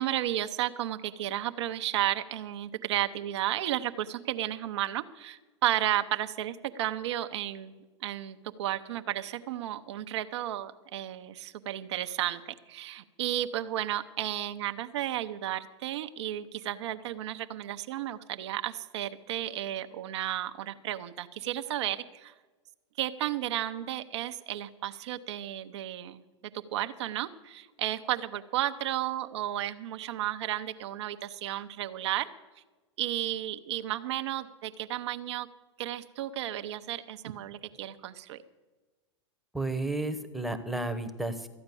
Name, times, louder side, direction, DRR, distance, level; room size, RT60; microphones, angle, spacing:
voice 1, 0.0-12.4 12.7-22.3 23.0-26.2 26.7-32.3 33.0-35.5 35.8-38.4, right 13 dB, 70° right, 8 dB, 0.7 m, -33 dB
voice 2, 39.5-41.5, right 2 dB, ahead, 8 dB, 1.0 m, -32 dB
13.5 x 8.7 x 6.9 m, 1.2 s
hypercardioid pair, 115°, 15 cm